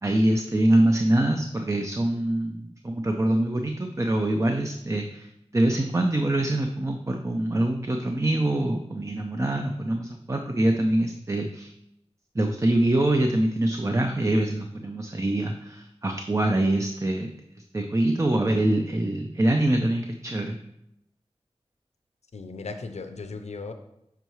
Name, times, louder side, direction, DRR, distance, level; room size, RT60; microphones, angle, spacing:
voice 1, 0.0-11.7 12.3-17.3 17.7-20.6, right 1 dB, 25° right, 4 dB, 0.5 m, -24 dB
voice 2, 22.3-23.7, left 3 dB, 75° left, 6 dB, 0.6 m, -36 dB
6.7 x 4.6 x 3.1 m, 0.82 s
cardioid pair, 40°, 11 cm